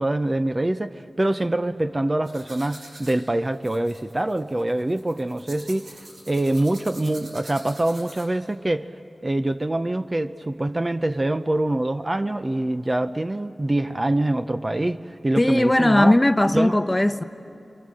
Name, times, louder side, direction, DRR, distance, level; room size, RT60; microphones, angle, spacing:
voice 1, 0.0-6.0 6.3-8.9 9.2-16.2 16.5-16.7, right 1 dB, 25° right, 0.6 m, -24 dB
sound 1, 2.2-8.5, right 1 dB, 85° right, 6.2 m, -45 dB
voice 2, 15.4-17.2, left 1 dB, 20° left, 0.8 m, -18 dB
29.5 x 23.5 x 7.7 m
wide cardioid pair, 80°, 0 cm